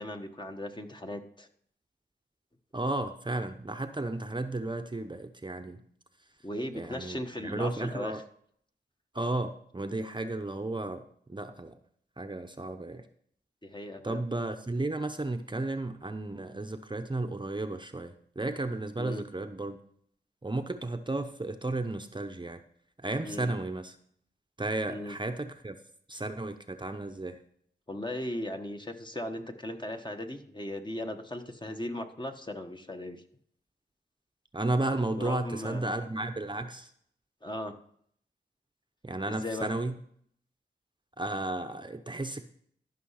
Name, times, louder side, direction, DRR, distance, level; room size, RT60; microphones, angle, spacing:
voice 1, 0.0-1.5 6.4-8.1 13.6-14.2 19.0-19.2 23.2-23.5 24.9-25.2 27.9-33.2 35.1-35.9 37.4-37.7 39.3-39.7, left 1 dB, 25° left, 4 dB, 1.3 m, -37 dB
voice 2, 2.7-5.8 6.7-8.2 9.1-11.8 12.2-13.1 14.0-19.8 20.4-22.6 23.0-23.9 24.6-25.8 26.1-27.4 34.5-36.9 39.0-40.0 41.2-42.4, right 2 dB, 25° right, 7 dB, 0.9 m, -33 dB
13.0 x 5.7 x 5.7 m, 0.63 s
cardioid pair, 50°, 19 cm